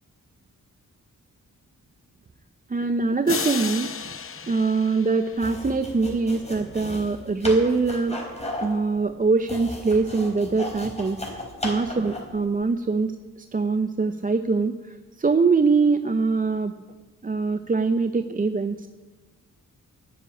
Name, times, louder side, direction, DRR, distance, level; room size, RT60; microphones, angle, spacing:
voice 1, 2.7-3.9 4.5-8.2 8.6-13.1 13.5-14.7 15.2-16.7 17.2-18.9, right 4 dB, 25° right, 9 dB, 0.6 m, -23 dB
sound 1, 3.3-5.9, left 6 dB, 40° left, 0.7 m, -33 dB
sound 2, 5.3-12.4, left 1 dB, 20° left, 4.2 m, -35 dB
10.0 x 9.9 x 8.6 m, 1.3 s
cardioid pair, 75°, 33 cm